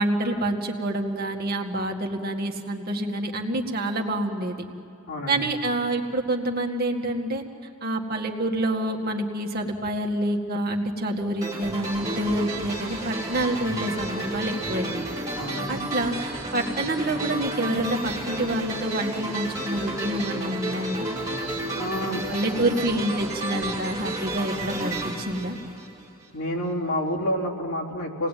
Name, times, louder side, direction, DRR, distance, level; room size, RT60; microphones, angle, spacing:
voice 1, 0.0-4.6 5.3-7.4 7.8-15.0 15.7-21.1 22.3-25.6, right 1 dB, 45° right, 2 dB, 2.0 m, -27 dB
voice 2, 5.1-5.5 15.3-15.8 21.8-22.2 22.5-22.6 26.3-28.3, equal, 80° left, -3 dB, 3.7 m, -29 dB
sound 1, 11.4-26.2, right 1 dB, 15° right, 4.1 m, -32 dB
26.5 x 19.0 x 9.2 m, 2.7 s
head